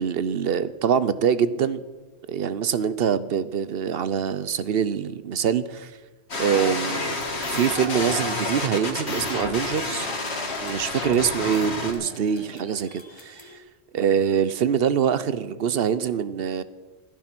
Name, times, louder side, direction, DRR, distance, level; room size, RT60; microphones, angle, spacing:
voice 1, 0.0-1.8 2.3-5.9 6.4-7.0 7.5-10.1 10.6-13.6 13.9-16.6, right 7 dB, 60° right, 15 dB, 0.9 m, -24 dB
sound 1, 6.3-11.9, left 2 dB, 70° left, 2.2 m, -29 dB
sound 2, 6.5-13.6, left 2 dB, 25° left, 1.2 m, -40 dB
14.0 x 12.5 x 6.0 m, 1.3 s
omnidirectional pair, 1.2 m